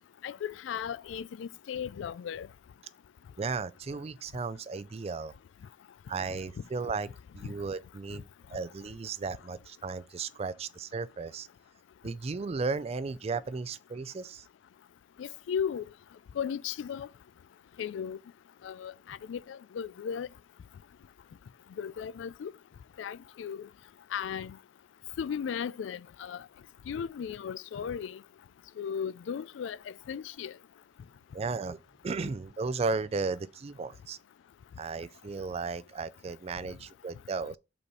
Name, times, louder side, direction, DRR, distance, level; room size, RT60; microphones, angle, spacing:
voice 1, 0.2-2.5 7.4-7.5 15.2-15.8 16.4-17.1 17.8-18.2 18.6-20.3 21.8-22.5 23.0-23.7 24.1-24.6 25.2-26.4 26.9-28.2 28.8-29.8 30.1-30.5, left 7 dB, 85° left, 0.3 m, -36 dB
voice 2, 3.4-5.3 6.1-7.1 7.3-8.2 8.5-11.5 12.0-14.4 31.3-31.8 32.0-34.2 34.8-37.6, right 4 dB, 35° right, 0.4 m, -35 dB
5.4 x 4.2 x 4.6 m
head